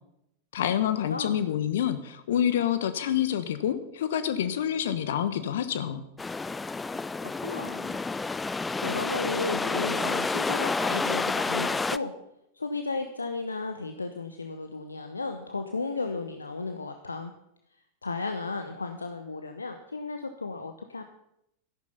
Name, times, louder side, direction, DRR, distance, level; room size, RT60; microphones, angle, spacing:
voice 1, 0.5-6.0, left 10 dB, 60° left, 12 dB, 1.2 m, -27 dB
sound 1, 6.2-12.0, left 3 dB, 10° left, 0.4 m, -29 dB
voice 2, 7.2-8.0 8.8-12.1 12.5-17.3 18.0-21.0, left 3 dB, 80° left, 7 dB, 0.9 m, -34 dB
13.5 x 11.5 x 5.8 m, 0.79 s
figure-of-eight pair, 90°, 0 cm